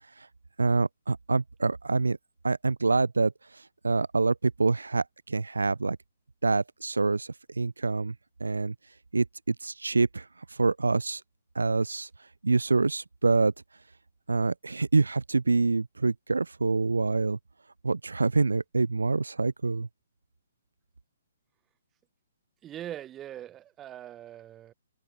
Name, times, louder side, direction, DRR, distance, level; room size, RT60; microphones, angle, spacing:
voice 1, 0.6-2.2 2.4-6.0 6.4-8.1 8.4-8.7 9.1-11.2 11.5-12.1 12.4-13.5 14.3-17.4 17.8-19.9, right 3 dB, 75° right, 0.4 m, -26 dB
voice 2, 22.6-24.7, right 11 dB, 20° right, 1.0 m, -41 dB
figure-of-eight pair, 125°, 0 cm